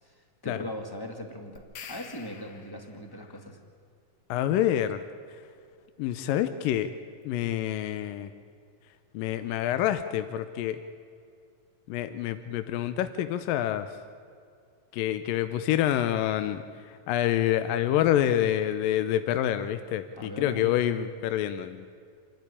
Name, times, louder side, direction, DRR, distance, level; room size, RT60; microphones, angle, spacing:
voice 1, 0.0-3.6 20.1-20.8, left 1 dB, 10° left, 3 dB, 1.3 m, -40 dB
sound 1, 1.6-3.1, left 6 dB, 60° left, 2.7 m, -46 dB
voice 2, 4.3-5.0 6.0-6.9 7.3-8.3 9.1-10.8 11.9-13.9 14.9-16.6 17.1-21.9, left 11 dB, 80° left, 10 dB, 2.4 m, -27 dB
27.5 x 12.0 x 10.0 m, 2.2 s
omnidirectional pair, 4.0 m